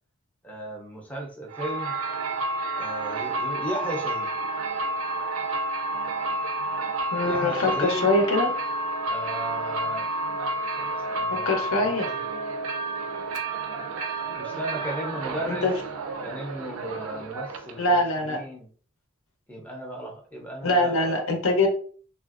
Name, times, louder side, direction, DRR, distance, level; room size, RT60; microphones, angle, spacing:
voice 1, 0.4-1.9 2.8-4.3 7.2-8.1 9.1-10.1 10.7-12.2 14.4-15.7 16.2-18.7 19.5-20.9, right 1 dB, 5° left, -1 dB, 0.5 m, -35 dB
sound 1, 1.5-17.9, right 2 dB, 75° right, 0.4 m, -30 dB
voice 2, 7.1-8.5 11.3-12.1 15.5-15.7 17.8-18.4 20.6-21.7, left 2 dB, 75° left, 3 dB, 0.7 m, -23 dB
3.2 x 2.4 x 2.4 m, 0.44 s
head